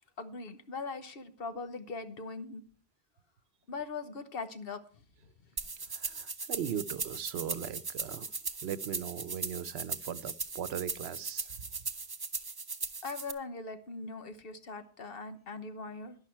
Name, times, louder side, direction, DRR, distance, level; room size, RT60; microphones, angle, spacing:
voice 1, 0.2-2.6 3.7-4.8 13.0-16.2, left 4 dB, 65° left, 1.3 m, -40 dB
sound 1, 5.6-13.3, right 4 dB, 25° right, 0.6 m, -38 dB
voice 2, 5.9-8.3 8.6-11.6, right 9 dB, 80° right, 0.9 m, -39 dB
11.5 x 11.0 x 4.5 m
omnidirectional pair, 1.1 m